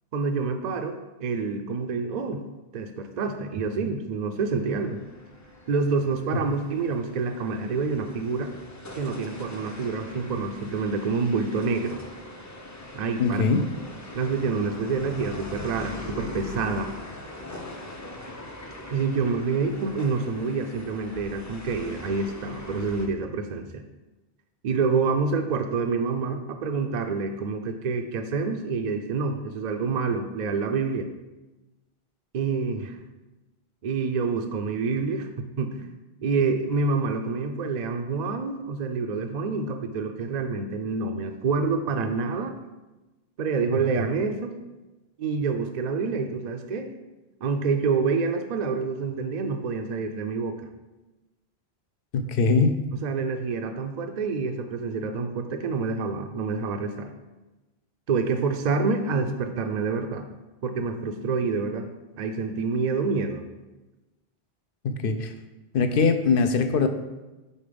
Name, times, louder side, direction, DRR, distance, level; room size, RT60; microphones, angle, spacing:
voice 1, 0.1-2.4 2.7-5.0 5.7-8.5 9.0-12.0 12.9-13.4 14.1-16.9 18.9-23.8 24.6-31.1 32.3-33.0 33.8-35.8 36.2-42.5 43.4-44.6 45.2-46.9 47.4-50.6 53.0-57.1 58.1-60.3 60.6-61.9 62.1-63.4, right 4 dB, 55° right, 5 dB, 0.5 m, -27 dB
sound 1, 4.6-23.1, left 1 dB, 25° left, 0.5 m, -41 dB
voice 2, 13.2-13.6 52.1-52.8 64.8-65.3 65.7-66.9, left 4 dB, 65° left, 8 dB, 0.7 m, -22 dB
5.3 x 4.1 x 5.1 m, 1.1 s
omnidirectional pair, 1.1 m